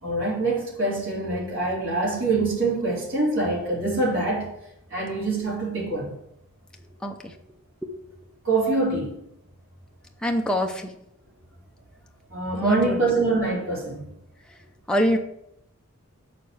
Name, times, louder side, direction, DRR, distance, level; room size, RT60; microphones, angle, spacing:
voice 1, 0.0-4.5 4.9-6.1 8.4-9.2 12.3-14.1, right 2 dB, 70° right, 3.2 m, -25 dB
voice 2, 10.2-10.9 12.6-13.0 14.9-15.2, equal, 5° left, 0.6 m, -24 dB
6.8 x 4.1 x 6.4 m
head